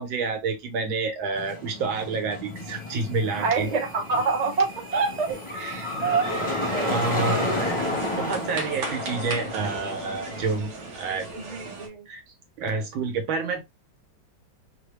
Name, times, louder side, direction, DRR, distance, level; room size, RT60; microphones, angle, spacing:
voice 1, 0.0-3.7 5.3-5.9 6.3-6.5 6.8-7.9 8.2-11.3 12.1-12.2 12.6-13.6, right 4 dB, 85° right, 1.7 m, -29 dB
sound 1, 1.4-10.6, left 2 dB, 30° left, 0.6 m, -32 dB
voice 2, 3.3-5.3 6.0-6.3 6.7-6.9 11.3-12.1, right 4 dB, 45° right, 0.5 m, -26 dB
sound 2, 6.2-11.9, right 3 dB, 65° right, 1.3 m, -36 dB
3.7 x 2.1 x 3.1 m
omnidirectional pair, 2.1 m